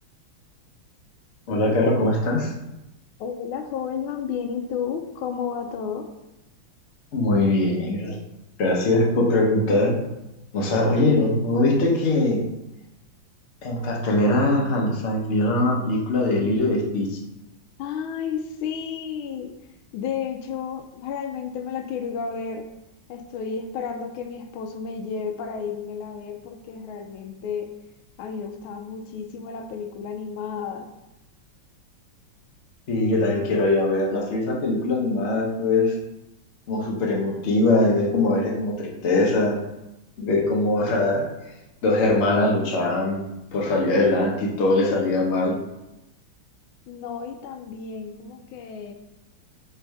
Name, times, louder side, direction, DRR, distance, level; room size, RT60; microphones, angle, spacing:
voice 1, 1.5-2.5 7.1-8.1 8.6-9.9 10.5-12.4 13.6-17.2 32.9-35.9 36.7-39.6 40.2-41.3 41.8-43.2 43.5-45.5, left 2 dB, 55° left, -1 dB, 0.8 m, -21 dB
voice 2, 3.2-6.1 17.8-19.5 19.9-22.7 23.1-27.7 28.2-30.9 46.9-48.9, left 6 dB, 85° left, 5 dB, 1.4 m, -32 dB
3.5 x 3.3 x 4.6 m, 0.93 s
omnidirectional pair, 2.2 m